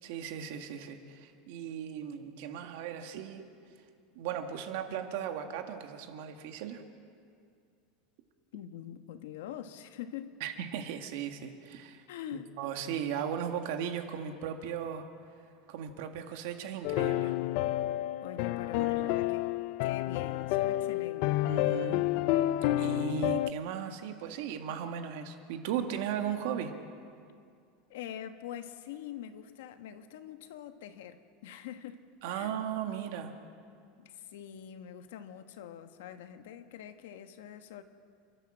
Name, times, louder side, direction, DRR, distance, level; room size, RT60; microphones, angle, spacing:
voice 1, 0.0-3.5 4.2-6.8 10.4-12.0 12.6-15.1 15.7-17.4 18.8-19.2 21.4-22.0 22.7-26.7 32.2-33.3, right 8 dB, 60° right, 6 dB, 1.8 m, -37 dB
voice 2, 8.5-10.4 12.1-12.5 18.2-19.5 19.8-21.4 27.9-32.0 32.3-32.6 34.0-37.8, left 10 dB, 80° left, 8 dB, 1.3 m, -44 dB
sound 1, 16.8-23.5, left 15 dB, 50° left, 0.4 m, -29 dB
29.5 x 11.5 x 7.7 m, 2.3 s
supercardioid pair, 170°, 0 cm